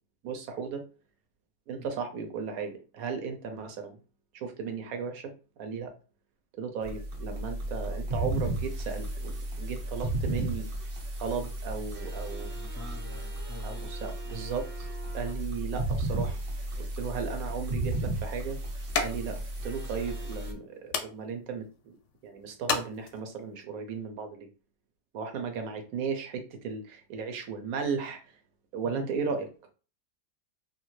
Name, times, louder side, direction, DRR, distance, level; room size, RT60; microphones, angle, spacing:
voice 1, 0.2-0.8 1.7-4.0 4.3-5.3 5.6-5.9 6.6-10.6 11.2-12.5 13.6-14.9 15.1-16.4 16.8-18.6 19.0-21.9 22.2-24.5 25.1-28.2 28.7-29.7, right 5 dB, 70° right, 5 dB, 1.0 m, -35 dB
sound 1, 6.8-20.5, right 1 dB, 55° right, 0.6 m, -34 dB
voice 2, 12.5-13.9 28.8-29.1, left 3 dB, 30° left, -4 dB, 0.3 m, -46 dB
sound 2, 17.3-23.6, left 5 dB, 70° left, 0.7 m, -37 dB
2.7 x 2.4 x 3.0 m, 0.35 s
omnidirectional pair, 1.7 m